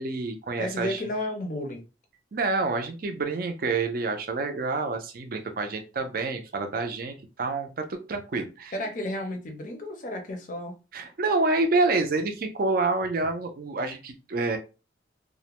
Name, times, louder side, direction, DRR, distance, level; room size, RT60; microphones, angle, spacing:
voice 1, 0.0-1.0 2.3-8.8 10.9-14.6, right 3 dB, 50° right, 0.4 m, -28 dB
voice 2, 0.6-1.8 8.7-10.7, left 1 dB, 40° left, 0.5 m, -32 dB
2.4 x 2.1 x 2.9 m
head